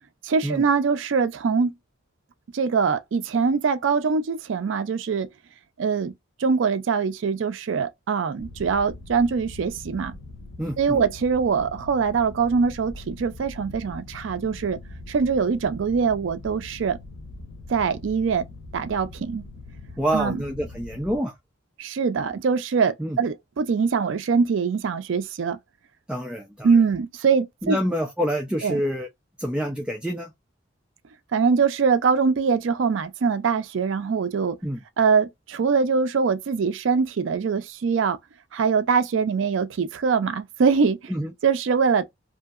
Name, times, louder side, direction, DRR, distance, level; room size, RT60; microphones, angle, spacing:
voice 1, 0.2-1.7 2.5-5.3 5.8-6.1 6.4-10.1 10.8-14.8 15.1-17.0 17.7-18.4 18.7-19.4 20.1-20.4 21.8-25.6 26.6-27.8 28.6-28.8 31.3-34.6 35.0-38.2 38.5-41.0 41.4-42.0, right 5 dB, 75° right, 0.4 m, -23 dB
Mechanical fan, 8.4-21.2, left 2 dB, 90° left, 0.9 m, -42 dB
voice 2, 10.6-11.0 20.0-21.3 23.0-23.2 26.1-26.7 27.6-29.1 29.4-30.3 34.6-34.8 41.1-41.3, equal, 5° right, 0.5 m, -27 dB
2.7 x 2.7 x 2.4 m
head